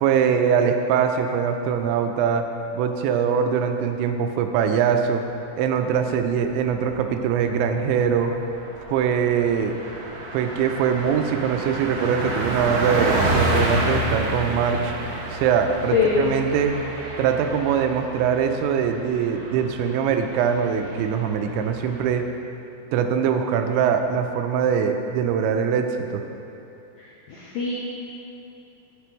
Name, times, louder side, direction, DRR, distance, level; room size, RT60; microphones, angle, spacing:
voice 1, 0.0-2.4 2.7-5.2 5.5-8.3 8.9-9.8 10.3-14.9 15.3-16.7 17.2-22.3 22.9-25.9 26.1-26.2, right 7 dB, 90° right, 6 dB, 2.9 m, -22 dB
Car passing by, 6.6-7.0 7.4-7.5 7.8-22.1, right 1 dB, 70° right, 2.1 m, -29 dB
voice 2, 15.9-16.2 27.3-27.8, left 5 dB, 85° left, -6 dB, 2.0 m, -22 dB
10.0 x 7.5 x 3.1 m, 3.0 s
omnidirectional pair, 5.1 m